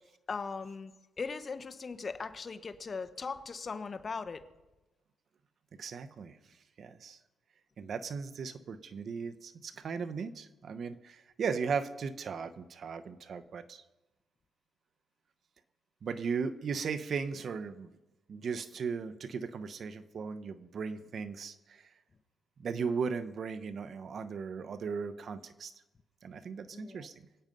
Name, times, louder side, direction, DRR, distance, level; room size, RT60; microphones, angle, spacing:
voice 1, 0.3-4.4 26.7-27.1, left 4 dB, 35° left, 10 dB, 1.1 m, -39 dB
voice 2, 5.8-6.4 6.8-7.2 7.8-13.8 16.0-17.9 18.3-21.9 22.6-25.7 26.2-27.1, right 5 dB, 55° right, 13 dB, 0.9 m, -37 dB
23.0 x 9.0 x 5.4 m, 1.1 s
cardioid pair, 90°, 0 cm